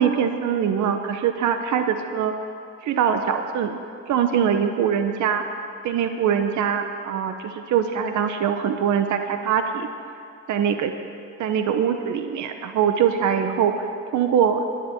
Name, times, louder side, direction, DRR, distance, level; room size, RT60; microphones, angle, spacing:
voice 1, 0.0-2.3 2.8-3.8 4.1-5.6 5.8-9.9 10.5-10.9 11.4-14.6, right 8 dB, 70° right, 7 dB, 0.8 m, -23 dB
11.0 x 10.0 x 7.6 m, 2.4 s
cardioid pair, 90°, 30 cm